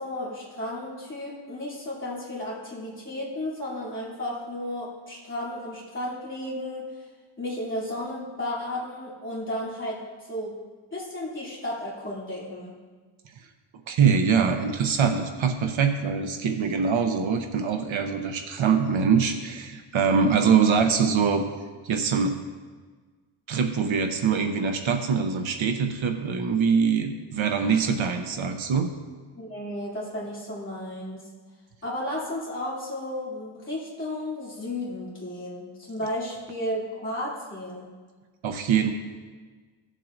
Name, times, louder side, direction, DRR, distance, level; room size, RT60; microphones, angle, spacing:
voice 1, 0.0-6.9 7.4-10.0 10.3-10.5 10.9-12.7 29.4-31.2 31.8-37.9, left 1 dB, 25° left, -7 dB, 2.8 m, -33 dB
voice 2, 13.9-21.4 21.8-22.4 23.5-28.9 38.4-38.9, right 6 dB, 70° right, 6 dB, 0.8 m, -23 dB
15.5 x 7.5 x 2.6 m, 1.4 s
wide cardioid pair, 165°, 49 cm